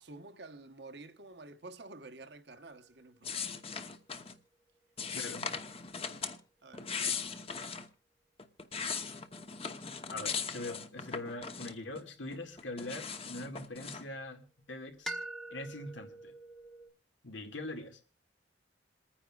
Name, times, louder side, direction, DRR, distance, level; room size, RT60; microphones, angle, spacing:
voice 1, 0.0-3.5 6.6-6.9 10.2-10.4, right 2 dB, 65° right, 1.1 m, -50 dB
sound 1, 2.5-6.8 11.1-13.7 15.1-16.9, right 1 dB, ahead, 1.1 m, -48 dB
sound 2, 3.2-4.4 5.0-6.4 6.7-7.9 8.4-12.0 12.3-14.0, left 6 dB, 30° left, 0.9 m, -39 dB
voice 2, 5.1-5.6 10.1-15.1 15.5-16.3 17.2-18.0, left 2 dB, 85° left, 2.1 m, -42 dB
27.5 x 9.8 x 2.4 m
head